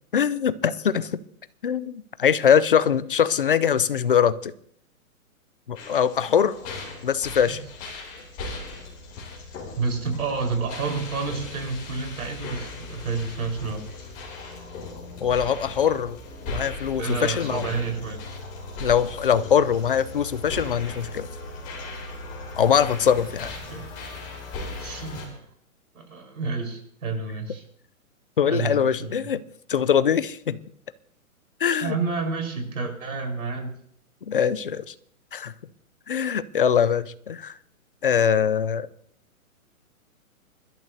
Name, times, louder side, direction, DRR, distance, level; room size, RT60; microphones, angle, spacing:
voice 1, 0.1-1.2 1.6-4.5 5.7-6.5 7.0-7.6 15.2-16.2 16.4-17.6 18.8-21.3 22.6-23.5 28.4-29.4 29.7-30.6 31.6-32.0 34.3-34.9 35.3-35.5 36.1-37.6 38.0-38.9, left 8 dB, 40° left, 0.4 m, -22 dB
sound 1, 5.7-25.3, left 2 dB, 15° left, 3.0 m, -38 dB
voice 2, 9.8-13.8 17.0-18.2 23.7-23.9 24.7-25.5 25.9-27.6 28.4-29.3 31.8-33.7, right 4 dB, 75° right, 4.7 m, -29 dB
25.0 x 12.0 x 2.8 m
hypercardioid pair, 170°, 43 cm